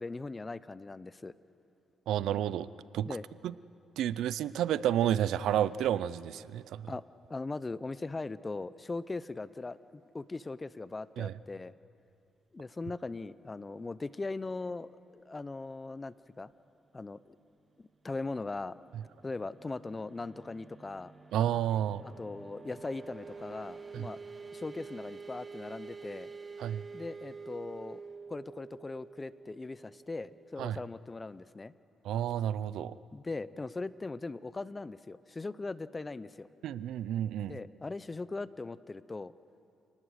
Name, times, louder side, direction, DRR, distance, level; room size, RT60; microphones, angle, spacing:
voice 1, 0.0-1.4 3.0-3.2 6.9-7.0 7.3-9.8 10.1-11.7 12.5-16.5 16.9-17.4 17.8-18.8 19.2-21.1 22.0-24.2 24.5-26.3 26.9-28.0 28.3-31.7 33.1-36.5 37.5-39.3, left 3 dB, 25° left, 17 dB, 0.6 m, -39 dB
voice 2, 2.1-2.7 2.9-3.1 3.4-3.5 4.0-6.9 11.2-11.3 21.3-22.0 23.9-24.1 26.6-26.8 30.6-30.8 32.0-32.9 36.6-37.6, right 11 dB, 80° right, 17 dB, 0.5 m, -30 dB
sound 1, 18.5-31.0, right 4 dB, 30° right, 1.0 m, -48 dB
29.0 x 19.0 x 6.5 m, 2.6 s
cardioid pair, 90°, 0 cm